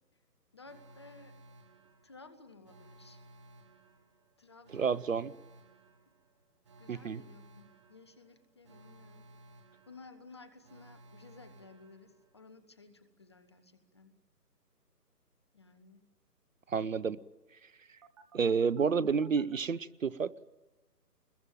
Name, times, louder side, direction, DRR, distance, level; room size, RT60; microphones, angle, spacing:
voice 1, 0.5-1.4 2.0-3.2 4.4-5.0 6.1-6.2 6.8-9.3 9.9-14.2 15.5-16.1, left 3 dB, 15° left, 0.8 m, -55 dB
Alarm, 0.6-12.6 18.0-19.6, right 2 dB, 20° right, 1.1 m, -58 dB
voice 2, 4.7-5.3 6.9-7.2 16.7-17.2 18.3-20.3, right 6 dB, 55° right, 0.8 m, -30 dB
23.0 x 21.5 x 9.1 m
figure-of-eight pair, 150°, 48 cm